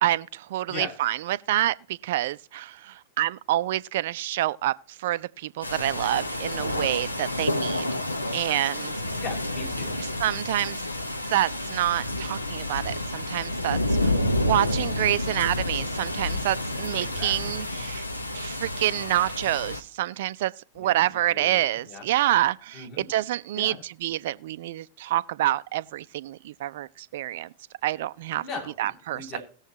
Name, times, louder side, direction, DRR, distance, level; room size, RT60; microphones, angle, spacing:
voice 1, 0.0-8.0 8.3-8.9 10.2-10.8 11.3-14.2 14.4-18.0 18.3-27.5 27.8-28.4 28.8-29.4, right 14 dB, 55° right, 0.4 m, -27 dB
sound 1, 5.6-19.8, left 1 dB, 85° left, 1.0 m, -29 dB
voice 2, 9.2-9.9 17.0-17.6 20.8-22.1 22.7-23.1 23.5-23.8 28.4-29.4, left 4 dB, 40° left, 5.7 m, -39 dB
18.5 x 7.1 x 2.9 m
figure-of-eight pair, 90°, 0 cm